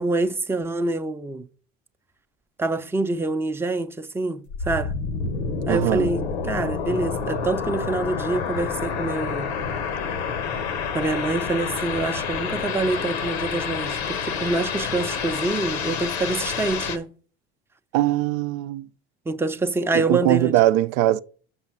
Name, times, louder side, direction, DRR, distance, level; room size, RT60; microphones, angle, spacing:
voice 1, 0.0-1.4 2.6-4.9 5.7-9.5 10.9-17.1 19.3-20.6, right 3 dB, 5° right, 0.5 m, -26 dB
sound 1, 4.5-17.0, left 5 dB, 90° left, 1.0 m, -28 dB
voice 2, 5.7-6.1 17.9-18.9 20.1-21.2, right 14 dB, 70° right, 0.5 m, -21 dB
6.2 x 5.5 x 5.9 m
hypercardioid pair, 80°, 32 cm